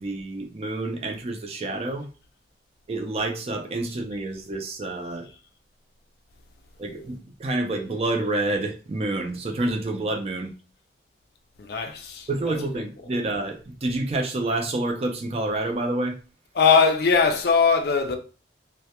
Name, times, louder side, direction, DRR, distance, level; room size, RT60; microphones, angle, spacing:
voice 1, 0.0-2.1 2.9-5.3 6.8-10.5 12.3-16.2, right 2 dB, 35° right, 0.4 m, -28 dB
voice 2, 11.6-12.6 16.5-18.2, left 5 dB, 60° left, 0.4 m, -20 dB
2.2 x 2.1 x 2.8 m
head